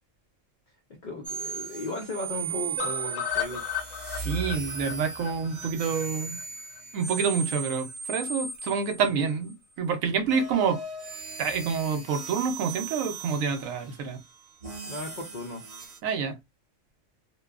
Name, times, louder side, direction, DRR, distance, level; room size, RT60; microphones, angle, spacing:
voice 1, 1.0-3.6 9.2-9.3 14.9-15.6, left 2 dB, 50° left, 0.6 m, -36 dB
sound 1, 1.2-9.5 10.2-16.0, right 5 dB, 35° right, 0.6 m, -37 dB
sound 2, 2.8-6.8 7.1-7.2 7.5-7.6 7.9-8.0, left 10 dB, 70° left, 1.1 m, -35 dB
voice 2, 4.2-6.4 6.9-10.8 11.4-14.2 16.0-16.4, right 6 dB, 85° right, 1.0 m, -28 dB
2.8 x 2.2 x 2.3 m
omnidirectional pair, 1.4 m